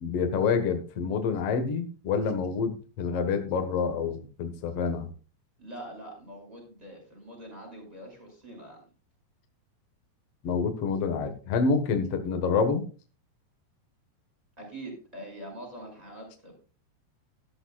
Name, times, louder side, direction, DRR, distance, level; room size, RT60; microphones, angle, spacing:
voice 1, 0.0-5.1 10.4-12.9, left 5 dB, 60° left, 6 dB, 1.6 m, -27 dB
voice 2, 5.6-8.8 14.6-16.6, right 1 dB, 10° right, 0 dB, 5.6 m, -44 dB
13.0 x 12.5 x 2.4 m, 0.36 s
omnidirectional pair, 4.8 m